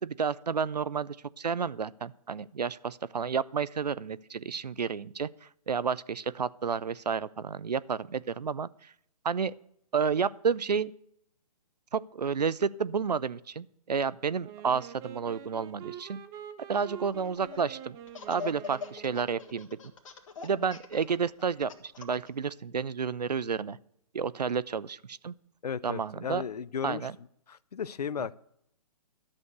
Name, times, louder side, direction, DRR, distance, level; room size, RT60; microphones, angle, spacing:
voice 1, 0.0-5.3 5.7-8.9 9.2-9.5 9.9-10.9 11.9-16.2 16.7-18.0 18.3-19.7 20.4-23.8 24.1-25.3 25.8-26.4 26.8-27.1, right 6 dB, 90° right, 19 dB, 0.5 m, -31 dB
Wind instrument woodwind instrument, 14.4-19.6, right 10 dB, 15° right, 0.6 m, -46 dB
Laughter, 17.1-17.7 18.1-22.3, left 6 dB, 55° left, 1.6 m, -42 dB
voice 2, 25.6-27.1 27.5-28.4, left 7 dB, 75° left, 19 dB, 0.5 m, -35 dB
11.5 x 6.4 x 6.7 m, 0.73 s
figure-of-eight pair, 135°, 20 cm